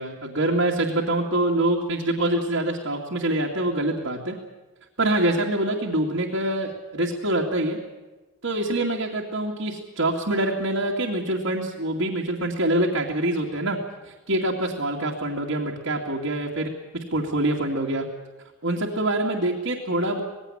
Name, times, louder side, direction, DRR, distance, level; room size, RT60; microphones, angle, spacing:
voice 1, 0.0-4.3 5.0-7.8 8.4-13.8 14.0-18.1 18.6-20.2, right 1 dB, 60° right, -3 dB, 2.4 m, -25 dB
19.5 x 16.5 x 10.0 m, 1.2 s
head